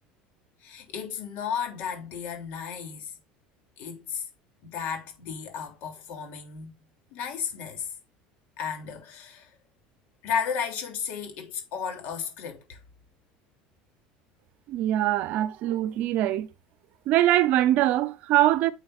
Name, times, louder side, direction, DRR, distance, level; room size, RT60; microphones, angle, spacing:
voice 1, 0.6-3.1 3.8-4.3 4.6-6.8 7.1-7.9 8.6-9.6 10.2-12.8, left 7 dB, 60° left, 3.2 m, -34 dB
voice 2, 14.7-16.5 17.1-18.7, right 14 dB, 55° right, 0.8 m, -23 dB
10.0 x 6.5 x 2.6 m
cardioid pair, 145°, 3 cm